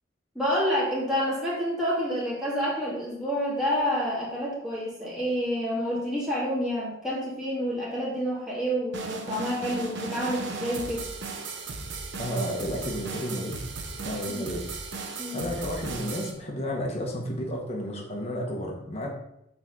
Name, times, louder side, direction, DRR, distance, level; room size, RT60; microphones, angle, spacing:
voice 1, 0.4-11.0 14.3-14.5 15.2-15.5, equal, 5° right, -8 dB, 2.1 m, -28 dB
sound 1, 8.9-16.3, right 4 dB, 60° right, 1.0 m, -36 dB
voice 2, 12.2-13.6 14.0-14.7 15.3-19.1, equal, 30° left, -1 dB, 1.3 m, -32 dB
6.5 x 3.9 x 6.3 m, 0.79 s
head